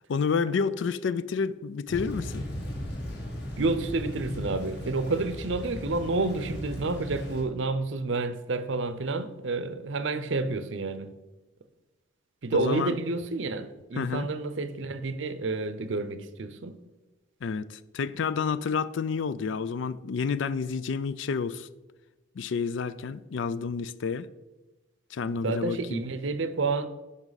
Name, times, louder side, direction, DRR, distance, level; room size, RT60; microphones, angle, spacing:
voice 1, 0.1-2.5 12.5-13.0 14.0-14.3 17.4-21.7 22.4-24.3 25.1-26.0, left 5 dB, 75° left, 0.4 m, -29 dB
Thunder / Rain, 1.9-7.4, left 1 dB, 55° left, 2.1 m, -37 dB
voice 2, 3.6-11.1 12.4-16.7 25.4-26.9, right 3 dB, 75° right, 0.7 m, -29 dB
11.0 x 5.5 x 4.0 m
head